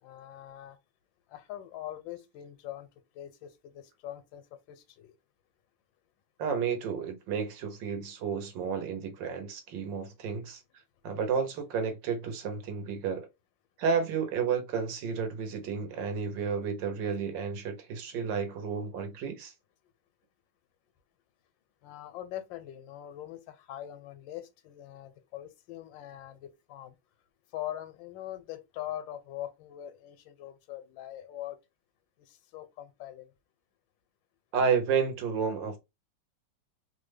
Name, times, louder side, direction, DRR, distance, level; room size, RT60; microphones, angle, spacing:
voice 1, 0.0-0.8 1.3-2.9 3.1-5.1 21.8-27.0 27.5-31.6 32.2-33.3, left 12 dB, 85° left, 1.3 m, -42 dB
voice 2, 6.4-10.6 11.0-13.3 13.8-19.5 34.5-35.8, right 6 dB, 80° right, 1.5 m, -31 dB
3.3 x 2.2 x 3.2 m
omnidirectional pair, 2.0 m